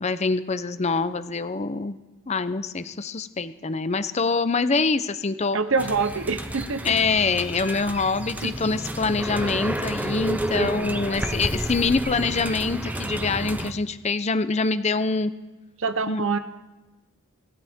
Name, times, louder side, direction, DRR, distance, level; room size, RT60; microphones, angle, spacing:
voice 1, 0.0-2.0 2.3-5.6 6.8-15.3 16.1-16.2, left 4 dB, 30° left, 12 dB, 0.6 m, -25 dB
voice 2, 5.5-7.0 8.4-8.5 10.5-11.0 15.8-16.4, right 4 dB, 60° right, 10 dB, 0.9 m, -26 dB
sound 1, 5.8-13.7, right 1 dB, 5° right, 0.6 m, -30 dB
26.0 x 11.5 x 3.6 m, 1.1 s
head